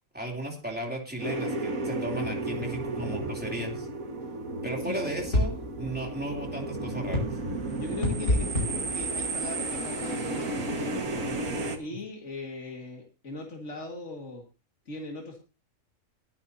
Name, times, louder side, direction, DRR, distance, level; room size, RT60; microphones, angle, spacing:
voice 1, 0.1-3.9 4.6-7.2, right 1 dB, 5° right, 1 dB, 3.0 m, -35 dB
sound 1, 1.2-11.8, right 2 dB, 85° right, 2.2 m, -33 dB
sound 2, 5.2-10.2, left 1 dB, 80° left, 6.0 m, -31 dB
voice 2, 7.8-11.0 11.8-14.4 14.9-15.4, left 2 dB, 60° left, 1 dB, 2.5 m, -39 dB
21.5 x 9.6 x 2.8 m, 0.32 s
omnidirectional pair, 1.4 m